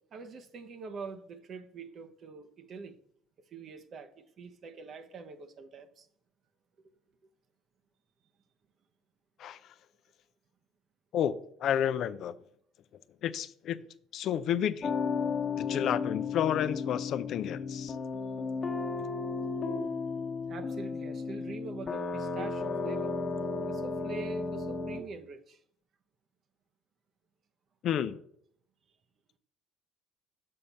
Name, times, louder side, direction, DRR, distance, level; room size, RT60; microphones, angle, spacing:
voice 1, 0.1-3.0 3.5-6.1 20.5-23.1 23.7-25.6, right 4 dB, 50° right, 0.9 m, -44 dB
voice 2, 11.1-12.3 13.2-13.8 14.1-14.9 15.6-17.9 27.8-28.2, left 9 dB, 60° left, 0.5 m, -31 dB
sound 1, 14.8-25.0, left 4 dB, 35° left, 1.2 m, -34 dB
6.5 x 5.7 x 5.5 m
supercardioid pair, 80°, 0 cm